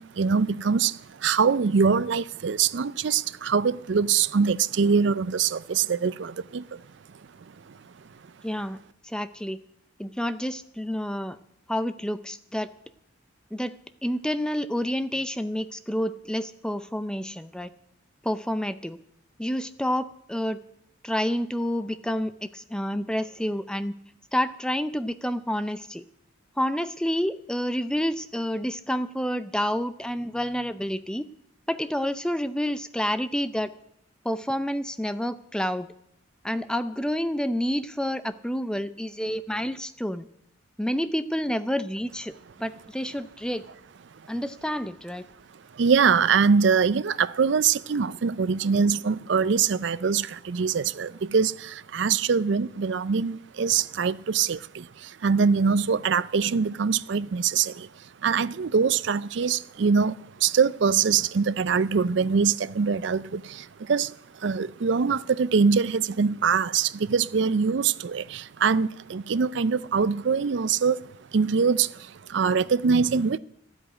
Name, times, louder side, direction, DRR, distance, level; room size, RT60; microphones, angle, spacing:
voice 1, 0.0-6.8 7.7-7.8 45.7-71.0 71.3-73.4, right 5 dB, 60° right, 0.4 m, -23 dB
voice 2, 8.4-8.8 9.0-9.6 10.0-11.4 11.7-12.7 13.5-13.8 14.0-17.7 18.2-19.0 19.4-20.6 21.0-23.9 24.3-26.0 26.6-31.3 31.7-33.7 34.2-35.9 36.4-40.3 40.8-43.7 44.3-45.3, equal, 5° left, 0.5 m, -29 dB
13.0 x 8.0 x 9.9 m
head